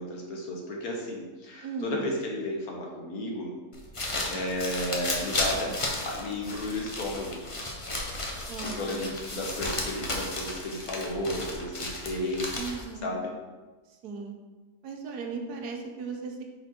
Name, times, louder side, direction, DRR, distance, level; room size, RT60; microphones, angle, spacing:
voice 1, 0.0-3.5 4.3-5.8 6.0-7.4 8.6-13.3, left 1 dB, 65° left, -1 dB, 1.5 m, -33 dB
voice 2, 1.6-2.1 8.5-9.1 12.6-13.2 14.0-14.3 14.8-16.4, right 4 dB, 75° right, 2 dB, 1.3 m, -37 dB
sound 1, 3.7-13.0, left 2 dB, 45° left, 0.4 m, -34 dB
5.3 x 4.1 x 4.3 m, 1.3 s
omnidirectional pair, 1.8 m